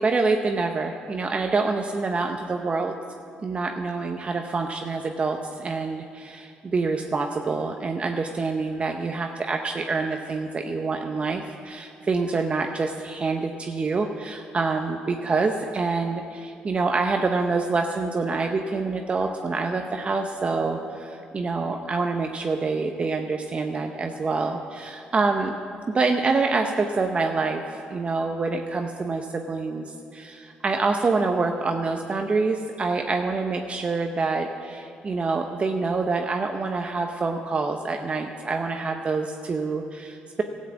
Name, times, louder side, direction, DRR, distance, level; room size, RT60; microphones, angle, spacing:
voice 1, 0.0-2.9 3.4-25.5 25.9-40.4, right 3 dB, 35° right, 4 dB, 0.8 m, -26 dB
13.5 x 7.4 x 8.4 m, 2.5 s
cardioid pair, 80°, 3 cm